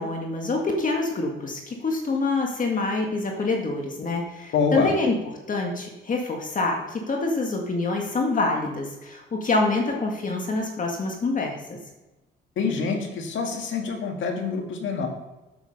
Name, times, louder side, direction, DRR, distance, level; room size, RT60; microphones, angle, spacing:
voice 1, 0.0-5.2 5.5-11.8, left 3 dB, 40° left, 1 dB, 1.9 m, -26 dB
voice 2, 4.5-4.9 12.6-15.1, left 5 dB, 75° left, 3 dB, 1.9 m, -26 dB
8.1 x 8.0 x 5.4 m, 1.1 s
cardioid pair, 90°, 20 cm